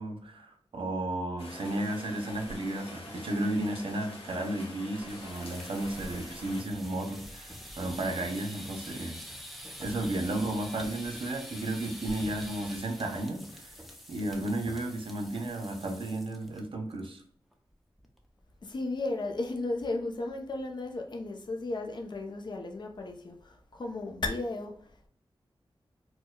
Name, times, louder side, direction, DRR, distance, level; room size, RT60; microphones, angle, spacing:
voice 1, 0.0-9.2 9.8-13.7 14.1-17.2, right 1 dB, 65° right, 4 dB, 0.6 m, -33 dB
Rain, 1.4-6.6, left 1 dB, 85° left, 0.8 m, -45 dB
sound 1, 5.0-16.6 16.9-17.2 17.5-17.6 18.0-18.4, equal, ahead, 0.5 m, -45 dB
voice 2, 18.6-24.7, left 2 dB, 50° left, 3 dB, 0.6 m, -34 dB
4.5 x 2.2 x 2.2 m, 0.62 s
wide cardioid pair, 95°, 9 cm